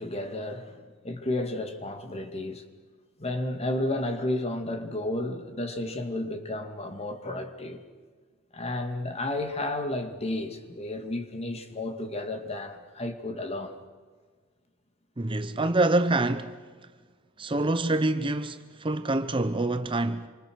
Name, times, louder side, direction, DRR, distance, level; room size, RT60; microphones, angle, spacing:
voice 1, 0.0-2.6 3.2-7.8 8.5-13.7, left 1 dB, 30° left, 2.2 m, -32 dB
voice 2, 15.2-16.6 17.4-20.3, right 2 dB, 25° right, 0.8 m, -26 dB
27.5 x 25.5 x 6.3 m
head